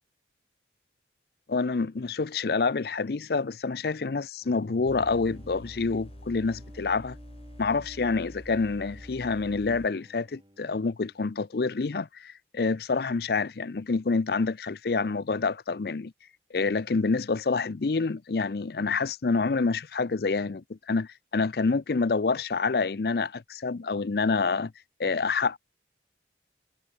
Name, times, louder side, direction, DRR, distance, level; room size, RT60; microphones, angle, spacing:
voice 1, 1.5-7.2 7.6-16.1 16.5-24.7 25.0-25.6, left 4 dB, 55° left, 0.5 m, -27 dB
Bowed string instrument, 4.4-11.7, equal, 25° right, 2.9 m, -53 dB
sound 1, 4.9-9.9, left 1 dB, 30° left, 1.9 m, -46 dB
head